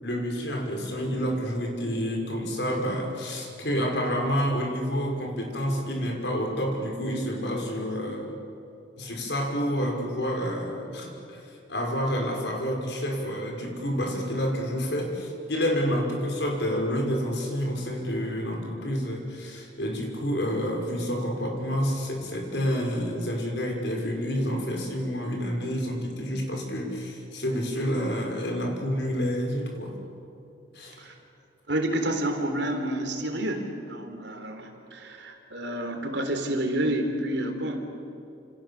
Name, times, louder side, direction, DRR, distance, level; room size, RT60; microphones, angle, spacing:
voice 1, 0.0-8.4 9.0-30.0 30.7-31.0, equal, 65° left, 1 dB, 5.8 m, -29 dB
voice 2, 31.7-37.8, right 1 dB, 65° right, 5 dB, 3.7 m, -29 dB
29.0 x 28.0 x 7.3 m, 2.7 s
head